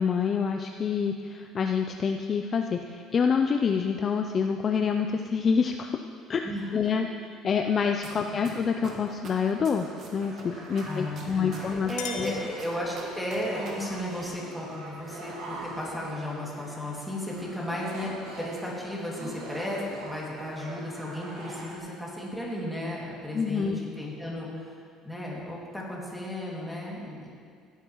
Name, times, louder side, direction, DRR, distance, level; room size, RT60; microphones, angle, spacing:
voice 1, 0.0-5.9 6.3-6.4 6.7-11.9 12.2-12.4 23.3-23.8, left 6 dB, 35° left, 5 dB, 0.4 m, -27 dB
sound 1, 8.0-8.1 8.4-10.4 10.8-13.7 14.0-14.1, right 5 dB, 45° right, 1.7 m, -44 dB
sound 2, 9.8-21.8, right 2 dB, 85° right, 2.8 m, -43 dB
voice 2, 10.8-24.5 25.0-27.3, left 1 dB, ahead, -5 dB, 2.3 m, -34 dB
Chink clink, 11.4-13.3, left 6 dB, 85° left, 1.1 m, -40 dB
16.0 x 9.2 x 3.1 m, 2.2 s
cardioid pair, 135°, 0 cm